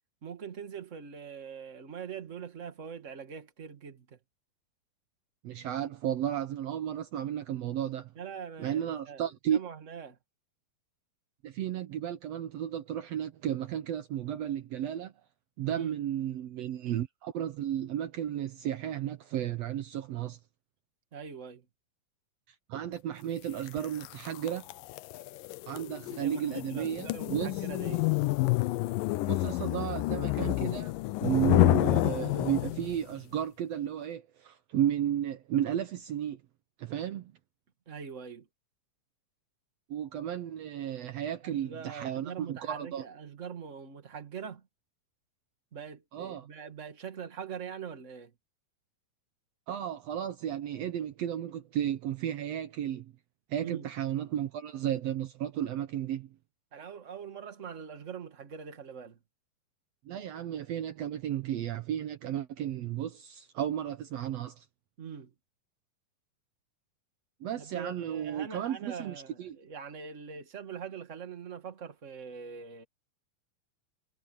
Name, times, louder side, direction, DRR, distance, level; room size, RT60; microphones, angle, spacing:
voice 1, 0.2-4.2 8.1-10.2 15.7-15.9 21.1-21.6 26.2-28.1 37.8-38.5 41.4-44.7 45.7-48.3 53.6-53.9 56.7-59.2 65.0-65.3 67.6-72.8, right 7 dB, 30° right, 1.5 m, -43 dB
voice 2, 5.4-8.1 8.6-9.6 11.4-15.1 15.6-20.4 22.7-24.6 25.7-27.5 29.3-36.4 36.8-37.3 39.9-43.0 46.1-46.5 49.7-53.1 53.5-56.3 60.0-64.6 67.4-69.6, right 10 dB, 85° right, 1.4 m, -33 dB
sound 1, 23.7-33.0, left 19 dB, 75° left, 2.2 m, -29 dB
omnidirectional pair, 4.2 m